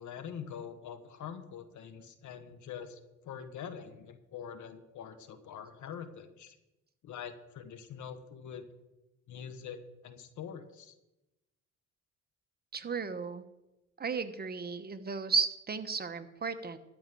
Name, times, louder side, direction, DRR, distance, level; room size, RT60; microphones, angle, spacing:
voice 1, 0.0-6.5 7.0-8.7 9.3-11.0, left 7 dB, 75° left, 9 dB, 1.4 m, -44 dB
voice 2, 12.7-13.4 14.0-16.8, right 5 dB, 30° right, 9 dB, 1.0 m, -34 dB
13.0 x 5.2 x 8.7 m, 0.96 s
cardioid pair, 90°, 30 cm